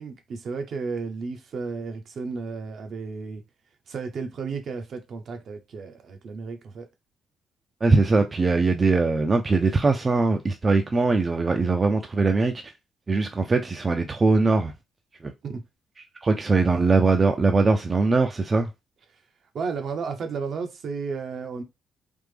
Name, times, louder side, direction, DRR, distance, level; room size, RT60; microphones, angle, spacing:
voice 1, 0.0-3.4 3.9-6.9 15.4-15.6 19.5-21.6, right 5 dB, 60° right, 0.7 m, -33 dB
voice 2, 7.8-12.5 13.1-14.7 15.2-15.3 16.2-18.7, right 3 dB, 30° right, 0.4 m, -21 dB
3.4 x 2.0 x 3.3 m
cardioid pair, 90°, 0 cm